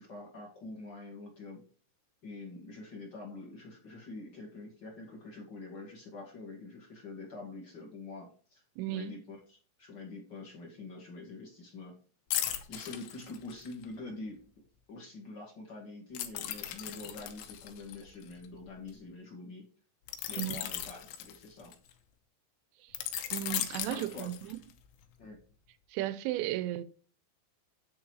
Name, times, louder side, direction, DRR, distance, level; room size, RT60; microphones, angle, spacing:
voice 1, 0.0-1.6 2.2-8.6 8.9-11.9 12.4-14.4 14.9-19.6 20.3-21.7 23.9-24.3 25.2-25.4, left 3 dB, 35° left, 2.0 m, -45 dB
voice 2, 8.8-9.1 20.4-20.6 22.8-23.0 23.3-24.6 25.9-26.8, right 14 dB, 85° right, 2.9 m, -35 dB
sound 1, 12.3-13.8 16.1-18.9 20.1-21.9 22.9-24.8 25.2-25.4, left 11 dB, 80° left, 3.1 m, -37 dB
9.9 x 4.4 x 4.7 m
omnidirectional pair, 5.2 m